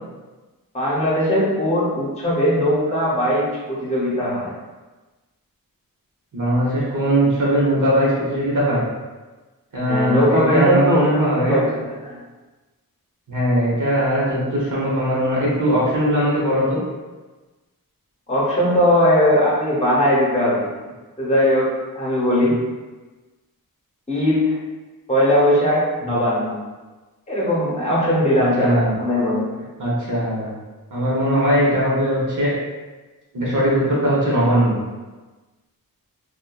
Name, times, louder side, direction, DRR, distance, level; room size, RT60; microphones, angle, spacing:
voice 1, 0.7-4.5 9.8-12.2 18.3-20.7 21.2-22.6 24.1-24.6 25.1-26.6 27.3-29.6, equal, 20° left, -7 dB, 0.9 m, -19 dB
voice 2, 6.3-8.8 9.7-11.6 13.3-16.8 26.0-26.2 28.6-28.9 29.8-30.5 30.9-32.5 33.3-34.8, equal, 55° right, -6 dB, 1.1 m, -20 dB
2.7 x 2.3 x 2.4 m, 1.2 s
wide cardioid pair, 70°, 37 cm